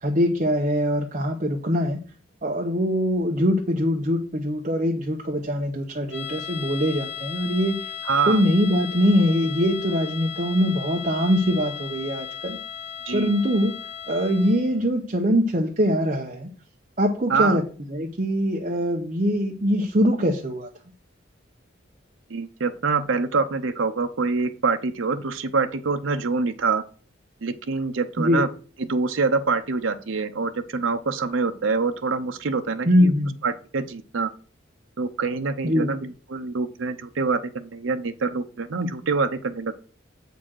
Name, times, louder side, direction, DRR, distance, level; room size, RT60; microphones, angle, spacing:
voice 1, 0.0-2.0 2.4-7.8 8.3-12.6 13.1-13.7 14.1-16.5 17.0-17.6 17.9-20.7 28.2-28.4 32.9-33.3 35.6-35.9, equal, 40° right, 1 dB, 0.8 m, -22 dB
sound 1, 6.1-14.8, left 9 dB, 60° left, 1.5 m, -36 dB
voice 2, 8.0-8.4 13.1-13.3 17.3-17.6 22.3-26.8 27.4-28.5 28.9-33.1 33.4-34.3 35.0-39.7, right 4 dB, 80° right, 7 dB, 0.7 m, -25 dB
7.5 x 4.0 x 6.2 m, 0.39 s
head